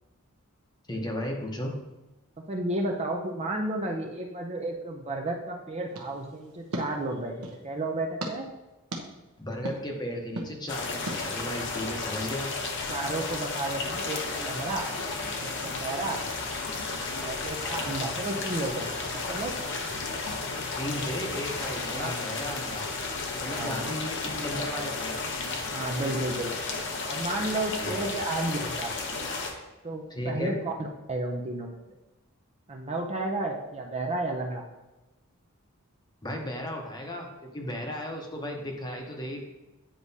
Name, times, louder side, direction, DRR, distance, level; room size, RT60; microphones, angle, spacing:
voice 1, 0.9-1.7 9.4-12.5 20.8-22.9 23.4-25.2 27.8-28.1 30.1-30.6 36.2-39.4, equal, 20° left, 1 dB, 0.9 m, -35 dB
voice 2, 2.5-7.3 7.6-8.5 12.9-14.9 15.4-16.2 17.2-19.5 21.9-22.2 23.5-24.0 25.7-26.7 27.1-29.0 29.8-30.7 31.1-31.8 32.7-34.7, right 2 dB, 30° right, 1 dB, 0.6 m, -32 dB
sound 1, 5.9-7.7 8.2-8.3 8.9-9.0 9.7-9.8 10.4-10.5 11.1-11.2, right 1 dB, 90° right, 1.0 m, -37 dB
sound 2, 10.7-29.5, left 3 dB, 55° left, 0.8 m, -33 dB
8.9 x 4.7 x 2.7 m, 1.1 s
head